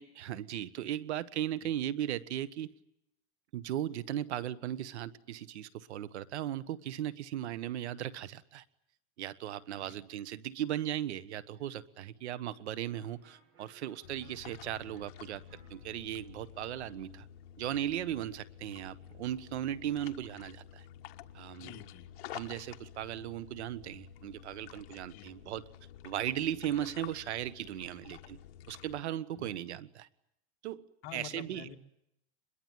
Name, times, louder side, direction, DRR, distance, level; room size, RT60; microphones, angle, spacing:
voice 1, 0.0-2.7 3.5-8.6 9.2-15.4 15.7-17.3 17.6-20.9 21.3-21.7 22.3-25.6 26.0-28.4 28.7-30.1 30.6-30.8 31.1-31.7, right 11 dB, 90° right, 17 dB, 1.6 m, -37 dB
Electric guitar, 12.9-18.5, right 3 dB, 40° right, 7.3 m, -66 dB
sound 1, 14.0-29.0, left 11 dB, 60° left, 1.5 m, -51 dB
voice 2, 21.5-22.1 25.1-25.3 29.3-29.6 31.0-31.8, left 11 dB, 40° left, 2 dB, 2.6 m, -48 dB
25.5 x 22.0 x 9.4 m, 0.80 s
supercardioid pair, 155°, 33 cm